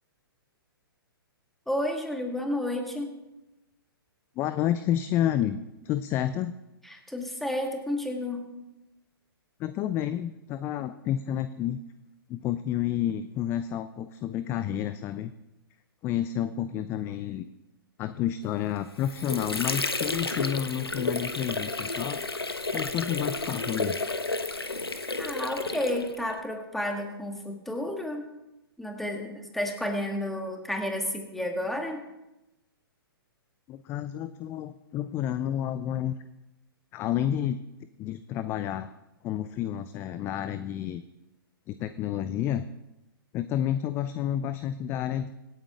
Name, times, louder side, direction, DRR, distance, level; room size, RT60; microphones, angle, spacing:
voice 1, 1.7-3.2 6.8-8.5 25.2-28.3 28.8-32.0, left 1 dB, ahead, 3 dB, 2.0 m, -31 dB
voice 2, 4.4-6.6 9.6-11.8 12.3-15.3 16.0-17.4 18.0-22.2 22.7-24.0 33.7-36.2 36.9-37.6 38.0-38.9 39.2-41.0 41.7-42.6 43.3-45.3, left 11 dB, 20° left, 13 dB, 0.4 m, -30 dB
Water / Sink (filling or washing), 18.7-26.4, left 3 dB, 80° left, 1.2 m, -31 dB
25.5 x 8.7 x 3.7 m, 0.97 s
figure-of-eight pair, 120°, 13 cm